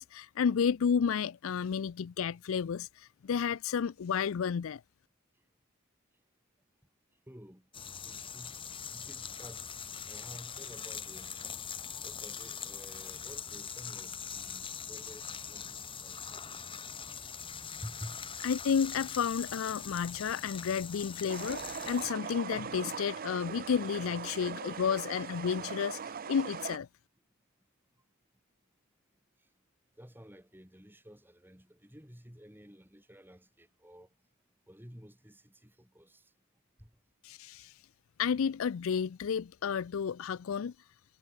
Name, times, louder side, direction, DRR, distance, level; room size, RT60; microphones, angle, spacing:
voice 1, 0.0-4.8 18.4-26.9 37.2-37.8 38.2-40.7, left 7 dB, 60° left, 0.4 m, -31 dB
voice 2, 7.3-7.7 8.0-8.6 8.9-9.8 10.0-11.4 12.0-15.7 16.0-16.2 17.8-18.2 30.0-34.1 34.7-36.3 36.8-36.9, equal, 10° right, 5.0 m, -51 dB
sound 1, 7.7-22.1, left 7 dB, 25° left, 2.6 m, -42 dB
sound 2, 21.3-26.8, right 6 dB, 40° right, 0.5 m, -40 dB
head